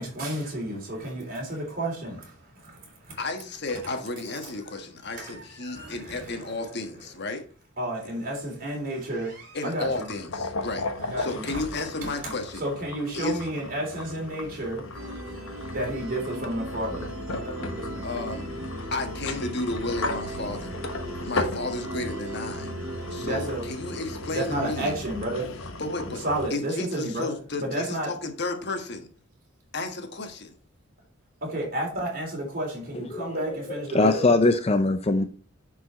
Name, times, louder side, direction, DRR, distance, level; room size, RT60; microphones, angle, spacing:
voice 1, 0.0-3.2 5.2-6.5 7.8-10.1 11.0-11.6 12.0-12.3 12.6-14.9 15.7-17.1 17.4-18.1 23.2-23.6 24.3-25.5 26.2-28.1 31.4-34.3, right 1 dB, 40° right, 3.6 m, -31 dB
voice 2, 3.2-7.4 9.5-10.9 11.2-12.7 13.1-13.5 18.0-18.5 18.9-20.8 21.2-22.7 23.1-25.0 25.8-26.2 26.5-29.1 29.7-30.5, left 2 dB, 50° left, 1.4 m, -32 dB
sound 1, 9.8-26.5, left 2 dB, 75° left, 1.2 m, -36 dB
sound 2, 14.9-26.3, right 1 dB, 70° right, 2.1 m, -38 dB
voice 3, 33.7-35.2, left 2 dB, 30° left, 0.5 m, -21 dB
10.0 x 4.7 x 4.2 m
head